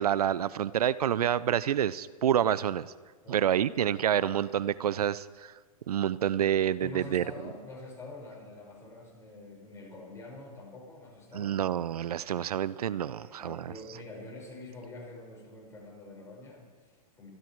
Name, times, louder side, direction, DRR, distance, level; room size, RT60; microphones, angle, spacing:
voice 1, 0.0-2.9 3.3-5.5 5.9-7.2 11.3-13.7, right 10 dB, 85° right, 19 dB, 0.6 m, -28 dB
voice 2, 3.2-3.8 6.8-11.6 13.1-17.3, left 2 dB, 15° left, -2 dB, 5.7 m, -46 dB
25.5 x 12.0 x 4.6 m, 1.5 s
hypercardioid pair, 135°, 19 cm